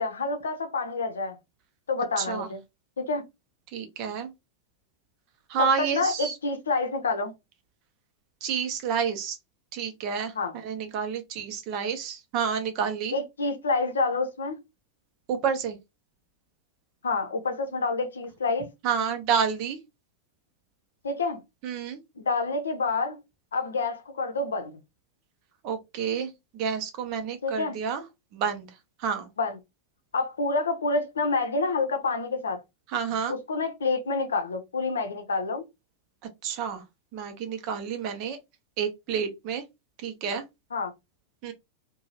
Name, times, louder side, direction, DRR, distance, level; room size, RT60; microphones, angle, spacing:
voice 1, 0.0-1.4 1.9-2.6 3.0-3.2 5.6-7.3 10.4-10.6 13.1-14.6 17.0-18.7 21.0-21.4 22.2-23.2 23.5-24.8 27.4-27.8 29.4-29.6 30.1-32.6 33.3-35.6 40.7-40.9, left 3 dB, 70° left, 0.6 m, -28 dB
voice 2, 2.2-2.5 3.7-4.3 5.5-6.3 8.4-9.4 9.7-13.1 15.3-15.8 18.8-19.8 21.6-22.0 25.6-28.0 28.3-28.7 29.0-29.3 32.9-33.3 36.4-36.8 37.1-38.4 38.8-39.6 40.0-40.4 41.4-41.5, right 7 dB, 40° right, 0.7 m, -29 dB
2.7 x 2.3 x 2.9 m
figure-of-eight pair, 90°, 0 cm